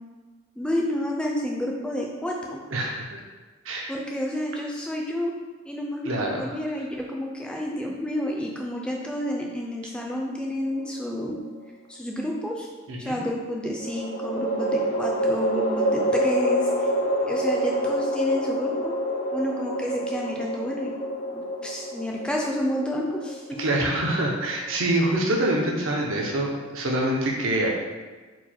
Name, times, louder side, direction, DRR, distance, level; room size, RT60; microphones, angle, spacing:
voice 1, 0.6-2.6 3.9-5.3 5.6-11.4 11.9-12.7 13.0-16.9 17.3-18.9 19.3-20.9 21.3-23.6, equal, 5° left, -1 dB, 0.4 m, -30 dB
voice 2, 2.7-3.2 3.6-3.9 6.0-6.5 12.9-13.2 23.6-27.7, right 1 dB, 70° right, -1 dB, 0.7 m, -25 dB
sound 1, 10.7-11.5 13.8-25.1, equal, 85° left, 1.1 m, -27 dB
4.6 x 2.2 x 4.2 m, 1.3 s
head